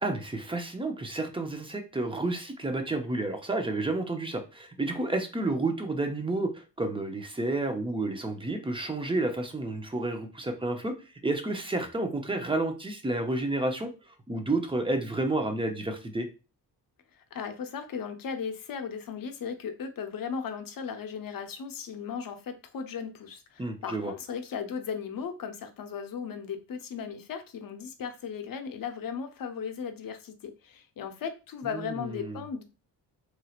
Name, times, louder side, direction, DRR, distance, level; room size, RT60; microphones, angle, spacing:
voice 1, 0.0-10.9 11.2-13.9 14.3-16.3 23.6-24.1 31.6-32.4, right 2 dB, 10° right, 5 dB, 0.6 m, -30 dB
voice 2, 17.2-32.6, left 6 dB, 55° left, 7 dB, 0.7 m, -36 dB
3.1 x 2.7 x 2.4 m, 0.32 s
cardioid pair, 70°, 42 cm